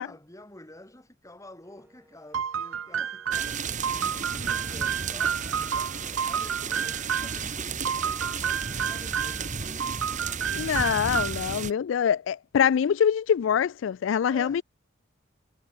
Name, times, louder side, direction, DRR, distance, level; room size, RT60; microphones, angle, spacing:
voice 1, 0.0-11.0 11.6-11.9 14.2-14.6, left 1 dB, 15° left, 3.7 m, -49 dB
Wind instrument woodwind instrument, 1.6-6.3, right 1 dB, 10° right, 4.0 m, -62 dB
sound 1, 2.3-7.4 7.8-9.5 9.8-11.5, right 7 dB, 80° right, 0.7 m, -30 dB
sound 2, 3.3-11.7, right 6 dB, 40° right, 1.4 m, -33 dB
voice 2, 10.5-14.6, left 8 dB, 65° left, 0.3 m, -24 dB
head